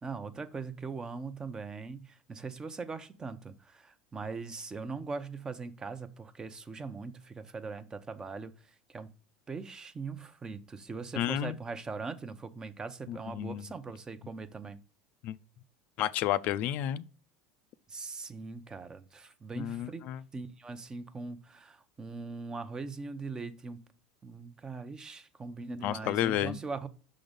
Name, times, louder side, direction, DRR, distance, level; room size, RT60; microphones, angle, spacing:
voice 1, 0.0-9.1 9.5-14.8 17.9-23.8 24.2-26.9, right 4 dB, 25° right, 0.7 m, -41 dB
voice 2, 11.2-11.6 13.1-13.6 15.2-15.4 16.0-17.0 19.6-20.2 25.8-26.6, left 12 dB, 60° left, 0.4 m, -31 dB
6.1 x 3.8 x 5.1 m
hypercardioid pair, 95°, 3 cm